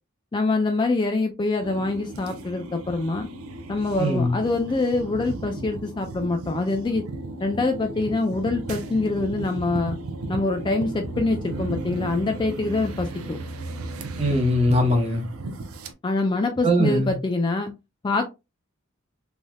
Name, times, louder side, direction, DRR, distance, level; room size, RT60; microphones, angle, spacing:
voice 1, 0.3-3.3 3.7-7.0 7.4-10.0 10.3-13.4 16.0-17.7 18.0-18.3, left 3 dB, 20° left, 0.3 m, -25 dB
sound 1, 1.6-15.9, right 2 dB, 80° right, 0.5 m, -35 dB
voice 2, 4.0-4.3 14.2-15.2 16.6-17.1, equal, 30° right, 0.9 m, -21 dB
3.3 x 2.6 x 2.2 m
head